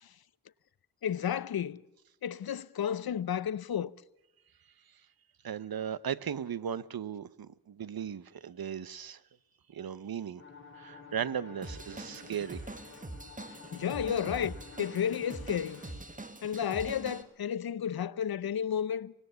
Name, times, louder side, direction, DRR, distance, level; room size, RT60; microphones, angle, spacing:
voice 1, 1.0-1.8 2.2-3.9 13.7-15.8 16.4-19.1, left 8 dB, 85° left, 0.8 m, -32 dB
voice 2, 5.4-9.2 9.7-10.4 10.7-12.6, right 8 dB, 75° right, 1.0 m, -37 dB
sound 1, 10.4-15.9, left 4 dB, 35° left, 6.0 m, -51 dB
Drum kit / Drum, 11.6-17.2, right 2 dB, 20° right, 1.9 m, -44 dB
24.5 x 20.0 x 6.9 m
wide cardioid pair, 110°, 36 cm